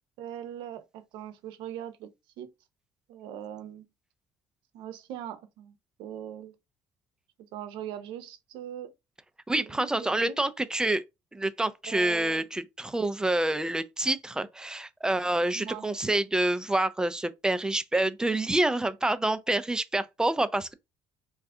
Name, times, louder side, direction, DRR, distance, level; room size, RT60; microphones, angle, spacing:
voice 1, 0.2-2.5 3.1-3.9 4.7-6.6 7.5-8.9 9.5-10.4 11.9-12.4 15.5-15.9, right 10 dB, 80° right, 0.6 m, -41 dB
voice 2, 9.5-11.0 11.3-20.7, right 2 dB, 10° right, 0.4 m, -27 dB
2.5 x 2.3 x 3.5 m
cardioid pair, 100°, 8 cm